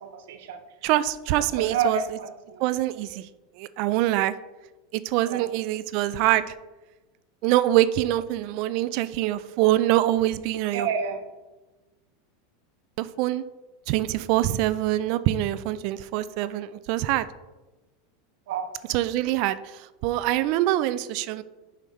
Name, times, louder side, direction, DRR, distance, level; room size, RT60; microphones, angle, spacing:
voice 1, 0.0-0.6 1.6-2.6 5.2-5.5 10.7-11.2 18.5-18.6, right 6 dB, 75° right, 7 dB, 0.7 m, -29 dB
voice 2, 0.8-2.0 2.6-3.3 3.6-4.3 4.9-6.6 7.4-10.9 13.0-13.4 13.9-17.3 18.9-21.4, right 14 dB, 60° right, 15 dB, 0.3 m, -24 dB
6.3 x 3.3 x 5.6 m, 1.1 s
supercardioid pair, 115°, 0 cm